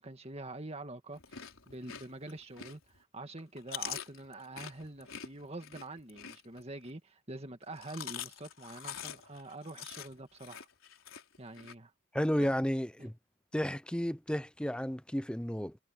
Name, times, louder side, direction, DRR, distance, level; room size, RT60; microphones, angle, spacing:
voice 1, 0.0-10.7 11.4-11.9 12.4-12.5 13.0-13.1, right 2 dB, 30° right, 1.9 m, -46 dB
Chewing mastication, 1.1-3.0 3.4-6.9 7.6-11.7, left 9 dB, 70° left, 4.4 m, -45 dB
voice 2, 12.1-13.2 13.5-15.8, equal, 5° left, 0.7 m, -32 dB
head